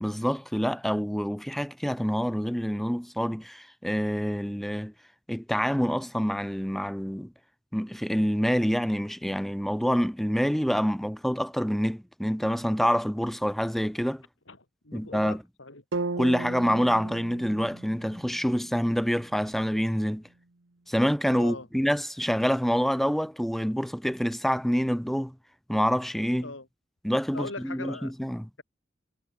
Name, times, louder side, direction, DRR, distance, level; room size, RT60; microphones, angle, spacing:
voice 1, 0.0-4.9 5.3-7.3 7.7-14.2 14.9-15.4 16.2-20.2 20.9-25.3 25.7-26.5 27.0-28.5, equal, ahead, 0.9 m, -27 dB
voice 2, 14.8-15.8 21.4-21.7 26.4-26.7 27.3-28.1, left 2 dB, 80° left, 5.3 m, -40 dB
sound 1, 15.9-20.0, right 3 dB, 85° right, 1.2 m, -37 dB
head